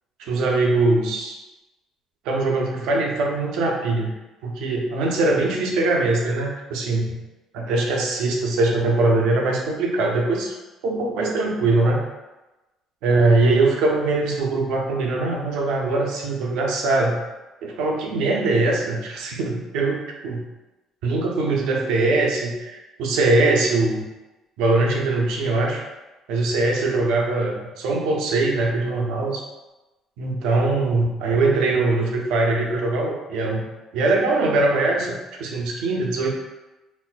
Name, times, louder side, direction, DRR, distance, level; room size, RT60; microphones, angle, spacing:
voice 1, 0.2-1.4 2.2-4.1 4.4-7.1 7.5-10.5 10.8-12.0 13.0-17.2 17.6-20.4 21.0-24.1 24.6-25.8 26.3-29.4 30.2-33.6 33.9-36.3, right 2 dB, 85° right, 0 dB, 0.6 m, -22 dB
4.1 x 2.1 x 2.2 m, 1.1 s
cardioid pair, 115°, 0 cm